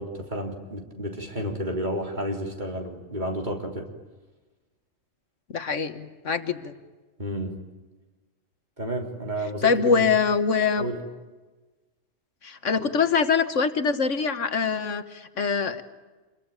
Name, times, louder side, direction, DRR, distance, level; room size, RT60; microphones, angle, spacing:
voice 1, 0.0-3.9 7.2-7.6 8.8-10.0 10.8-11.0 12.8-12.9, equal, 35° right, 2 dB, 3.7 m, -31 dB
voice 2, 5.5-6.8 9.6-10.9 12.4-15.8, left 5 dB, 70° left, 10 dB, 1.6 m, -24 dB
28.0 x 22.5 x 9.0 m, 1.2 s
omnidirectional pair, 1.3 m